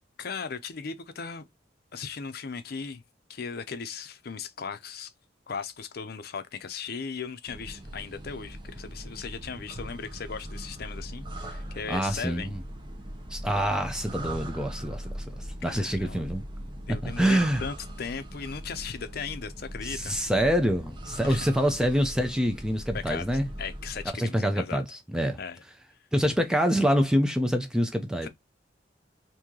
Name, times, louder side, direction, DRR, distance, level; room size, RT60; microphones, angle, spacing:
voice 1, 0.2-1.5 1.9-3.0 3.3-5.1 5.5-12.5 15.6-16.2 16.9-20.1 21.2-21.5 22.9-24.8 25.4-25.6 28.2-28.3, left 5 dB, 60° left, 0.6 m, -37 dB
sound 1, 7.5-24.1, right 1 dB, 25° right, 0.8 m, -40 dB
voice 2, 11.9-12.6 13.3-15.4 15.6-16.4 17.0-17.6 19.8-23.5 24.1-25.4 26.1-28.3, equal, 5° right, 0.4 m, -26 dB
3.0 x 2.7 x 3.6 m
head